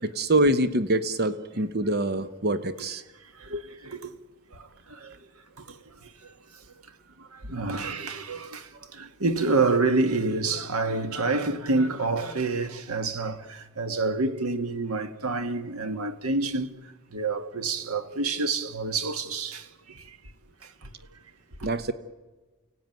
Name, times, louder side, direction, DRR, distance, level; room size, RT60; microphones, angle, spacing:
voice 1, 0.0-3.0 3.5-3.6 21.6-21.9, right 1 dB, 45° right, 1.0 m, -25 dB
voice 2, 3.4-4.1 4.5-5.2 5.6-6.1 7.2-16.7 17.1-20.2 20.6-20.9 21.6-21.7, right 3 dB, 80° right, 1.8 m, -28 dB
29.5 x 17.0 x 9.3 m
head